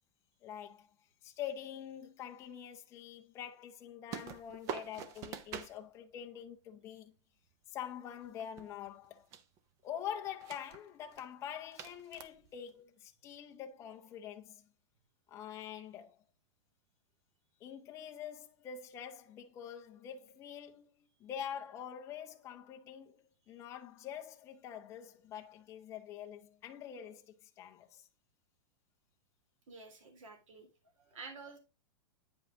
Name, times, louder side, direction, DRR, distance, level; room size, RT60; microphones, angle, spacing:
voice 1, 0.4-0.9 1.2-7.1 7.7-9.3 9.8-14.6 15.3-16.2 17.6-20.9 21.2-23.2 23.5-28.1, left 9 dB, 15° left, 0.7 m, -45 dB
sound 1, 4.1-5.8 8.1-9.1 9.3-9.6 10.3-10.8 11.1-11.2 11.7-12.7, right 7 dB, 20° right, 0.4 m, -45 dB
voice 2, 29.7-30.7 30.9-31.6, right 4 dB, 85° right, 3.4 m, -50 dB
9.0 x 5.4 x 3.8 m
supercardioid pair, 175°, 16 cm